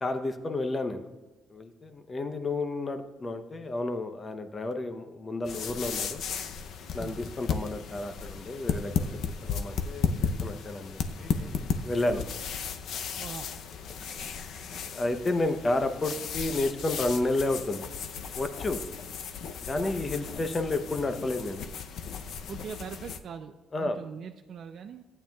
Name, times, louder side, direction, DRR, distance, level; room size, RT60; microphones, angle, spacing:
voice 1, 0.0-1.1 1.5-6.2 6.9-12.2 14.3-17.9 18.3-18.8 19.6-21.6 23.7-24.0, left 2 dB, 20° left, 8 dB, 0.7 m, -31 dB
sound 1, 5.4-23.2, left 6 dB, 65° left, 0.6 m, -35 dB
voice 2, 13.2-13.5 19.7-19.9 22.5-25.0, right 7 dB, 50° right, 5 dB, 0.4 m, -41 dB
15.0 x 8.9 x 2.3 m, 1.2 s
cardioid pair, 160°, 0 cm